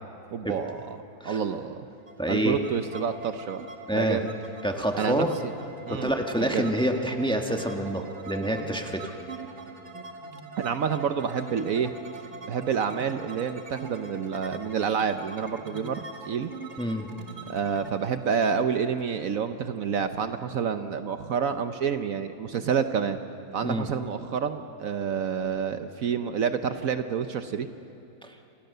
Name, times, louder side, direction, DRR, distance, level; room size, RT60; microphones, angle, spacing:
voice 1, 0.3-0.8 1.2-1.9 2.3-3.6 3.9-4.3 5.0-5.3 5.9-6.1 6.4-6.7 10.6-11.9 12.5-16.5 17.5-23.2 23.5-27.7, right 7 dB, 65° right, 9 dB, 1.2 m, -28 dB
sound 1, 2.1-19.8, right 3 dB, 45° right, 2.1 m, -43 dB
voice 2, 2.2-2.6 3.9-4.2 4.6-5.3 5.9-9.0 16.8-17.1 23.6-23.8, right 1 dB, 5° left, 3 dB, 1.5 m, -27 dB
28.5 x 27.0 x 6.8 m, 2.7 s
omnidirectional pair, 1.6 m